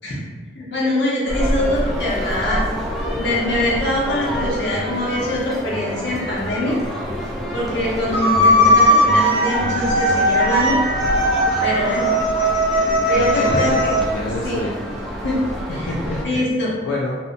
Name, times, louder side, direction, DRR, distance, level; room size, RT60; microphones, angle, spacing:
voice 1, 0.5-2.6 3.1-6.8 7.5-10.8 11.6-12.1 13.1-14.0 14.4-14.7 15.2-15.4 15.7-15.9 16.2-16.7, left 1 dB, 65° left, -5 dB, 0.7 m, -23 dB
sound 1, 1.3-16.2, equal, ahead, 0.3 m, -27 dB
sound 2, 8.1-14.0, equal, 20° right, 0.9 m, -18 dB
voice 2, 13.1-14.7 15.7-17.2, left 2 dB, 90° left, -4 dB, 0.3 m, -28 dB
2.6 x 2.1 x 2.5 m, 1.4 s
head